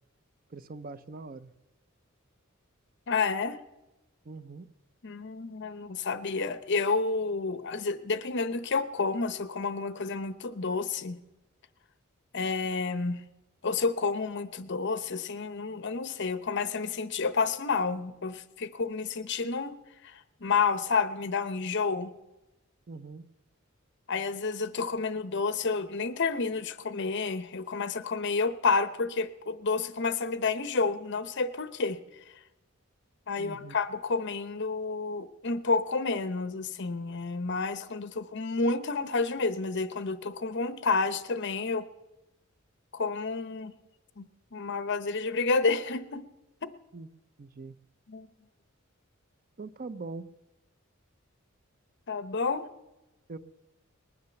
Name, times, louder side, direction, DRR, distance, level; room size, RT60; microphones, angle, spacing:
voice 1, 0.5-1.5 4.2-4.7 22.9-23.2 33.4-33.8 46.9-47.1 47.4-47.7 49.6-50.3 53.3-53.4, right 3 dB, 45° right, 14 dB, 0.6 m, -42 dB
voice 2, 3.1-3.6 5.0-11.2 12.3-13.2 13.6-19.8 20.4-22.1 24.1-32.0 33.3-41.9 42.9-43.7 44.2-46.2 46.6-46.7 48.1-48.3 52.1-52.7, left 4 dB, 55° left, 13 dB, 0.8 m, -30 dB
20.0 x 9.6 x 7.0 m, 1.0 s
head